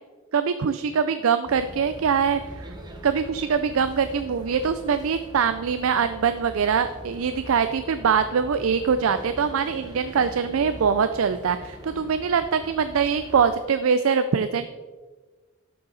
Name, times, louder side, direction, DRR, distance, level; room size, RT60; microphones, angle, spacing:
voice 1, 0.3-2.7 3.0-14.7, right 6 dB, 85° right, 11 dB, 0.4 m, -23 dB
sound 1, 1.4-13.6, right 1 dB, 20° right, 1.0 m, -42 dB
12.0 x 6.9 x 4.0 m, 1.4 s
head